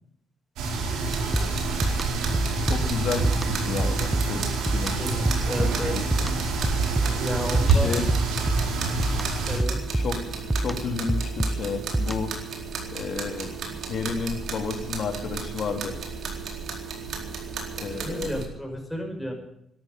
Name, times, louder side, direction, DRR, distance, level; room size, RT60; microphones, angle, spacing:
sound 1, 0.6-9.6, right 3 dB, 90° right, 3.9 m, -27 dB
sound 2, 1.0-18.4, right 5 dB, 60° right, 4.1 m, -34 dB
sound 3, 1.3-12.5, right 2 dB, 10° right, 0.7 m, -29 dB
voice 1, 2.7-4.5 4.7-4.9 5.6-6.3 7.6-8.0 9.9-10.2 10.5-12.3 12.9-13.5 13.9-16.0 17.8-18.4, left 5 dB, 55° left, 4 dB, 3.3 m, -31 dB
voice 2, 5.0-6.0 7.2-8.0 8.5-8.7 9.5-9.8 17.8-19.3, equal, 5° left, 1 dB, 5.9 m, -32 dB
12.5 x 12.0 x 9.4 m, 0.76 s
cardioid pair, 90°, 0 cm